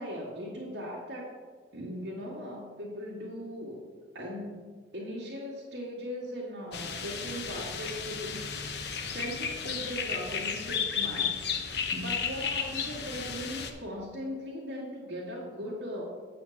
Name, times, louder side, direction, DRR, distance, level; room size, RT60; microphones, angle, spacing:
voice 1, 0.0-1.3 1.7-3.8 4.1-4.6 4.9-16.0, equal, 75° right, -7 dB, 1.8 m, -39 dB
sound 1, 6.7-13.7, left 6 dB, 65° left, 0.8 m, -33 dB
8.1 x 4.3 x 7.1 m, 1.5 s
head